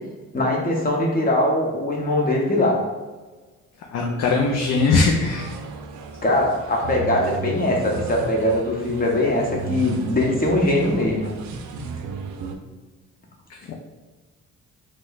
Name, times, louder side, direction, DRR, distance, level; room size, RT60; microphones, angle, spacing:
voice 1, 0.3-2.8 6.2-11.3, left 1 dB, 30° left, -1 dB, 0.8 m, -21 dB
voice 2, 3.9-5.5 13.7-13.8, left 4 dB, 60° left, -1 dB, 0.5 m, -20 dB
sound 1, 4.2-12.6, right 5 dB, 75° right, 0.5 m, -34 dB
3.1 x 2.1 x 3.9 m, 1.3 s
cardioid pair, 90°, 30 cm